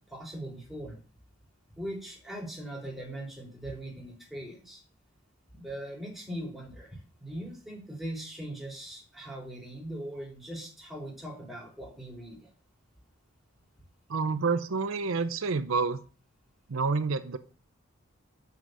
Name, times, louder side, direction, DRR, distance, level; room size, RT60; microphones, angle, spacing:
voice 1, 0.1-1.0 1.8-4.8 5.5-12.5, right 1 dB, ahead, -3 dB, 3.4 m, -40 dB
voice 2, 14.1-16.0 16.7-17.4, right 4 dB, 80° right, 11 dB, 0.7 m, -28 dB
7.2 x 6.2 x 6.6 m, 0.39 s
head